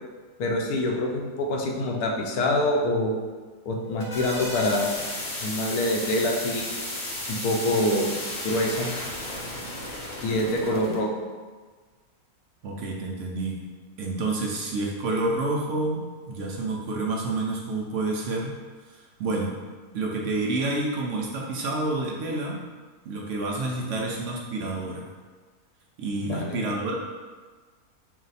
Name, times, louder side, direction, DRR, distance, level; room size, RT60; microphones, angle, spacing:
voice 1, 0.4-3.2 3.7-5.0 5.4-6.7 7.3-8.1 8.4-8.9 10.2-11.1 24.0-24.1 26.3-26.6, left 1 dB, 85° left, 0 dB, 1.1 m, -25 dB
sound 1, 3.7-11.0, left 1 dB, 40° left, 0.8 m, -34 dB
voice 2, 12.6-13.6 14.0-18.5 18.9-19.6 19.9-22.6 23.1-25.1 26.0-26.9, right 2 dB, 65° right, -1 dB, 0.8 m, -29 dB
4.7 x 2.1 x 4.0 m, 1.4 s
omnidirectional pair, 1.6 m